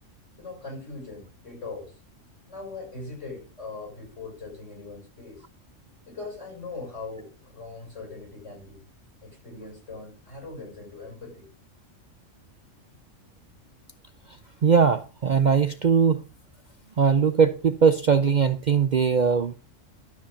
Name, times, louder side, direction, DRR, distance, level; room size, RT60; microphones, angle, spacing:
voice 1, 0.4-2.0 2.5-5.4 6.1-8.8 9.2-11.5, left 3 dB, 70° left, 0 dB, 7.3 m, -40 dB
voice 2, 14.6-16.2 17.0-19.5, right 6 dB, 50° right, 10 dB, 0.6 m, -20 dB
12.0 x 7.2 x 5.1 m, 0.34 s
omnidirectional pair, 1.3 m